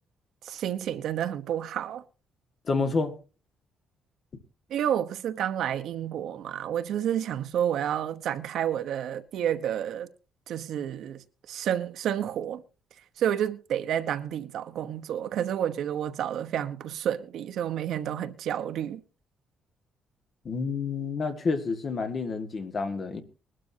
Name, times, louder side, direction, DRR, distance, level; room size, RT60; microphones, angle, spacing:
voice 1, 0.4-2.0 4.7-10.1 10.5-12.6 13.2-19.0, right 10 dB, 60° right, 1.0 m, -30 dB
voice 2, 2.7-3.1 20.5-23.2, left 4 dB, 30° left, 1.8 m, -29 dB
21.0 x 12.5 x 2.8 m
cardioid pair, 175°, 0 cm